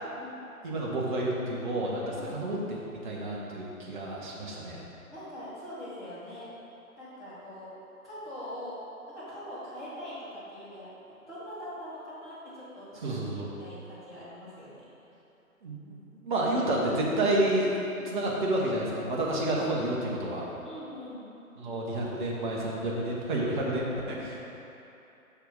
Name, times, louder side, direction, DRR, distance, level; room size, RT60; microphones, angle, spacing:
voice 1, 0.0-0.5 2.1-2.4 5.1-6.5 7.0-7.7 8.0-8.8 9.1-13.2 13.6-14.9 17.8-18.1 20.6-21.3, equal, ahead, -20 dB, 0.6 m, -43 dB
voice 2, 0.6-2.8 3.0-4.8 13.0-13.5 15.6-16.0 16.2-17.7 18.0-20.4 21.6-24.4, right 1 dB, 35° right, -4 dB, 1.4 m, -30 dB
6.6 x 6.1 x 4.9 m, 2.9 s
figure-of-eight pair, 135°, 44 cm